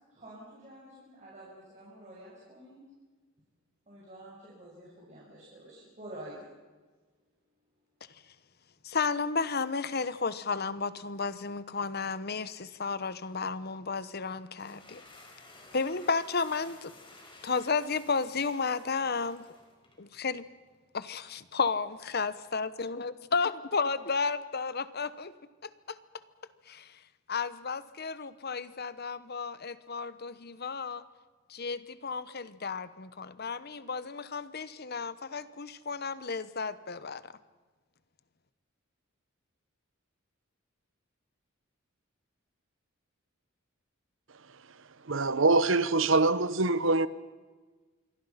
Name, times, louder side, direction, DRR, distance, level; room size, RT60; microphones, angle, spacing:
voice 1, 0.1-2.8 3.9-6.5, right 1 dB, 35° right, 6.0 m, -48 dB
voice 2, 8.8-15.0 15.7-16.9 17.4-19.4 20.0-20.5 20.9-25.3 25.6-26.0 26.7-26.9 27.3-31.0 31.5-37.3, left 4 dB, 50° left, 1.1 m, -33 dB
sound 1, 14.4-20.0, left 2 dB, 25° left, 4.8 m, -54 dB
voice 3, 45.0-47.1, right 3 dB, 70° right, 1.0 m, -24 dB
27.0 x 22.5 x 5.8 m
head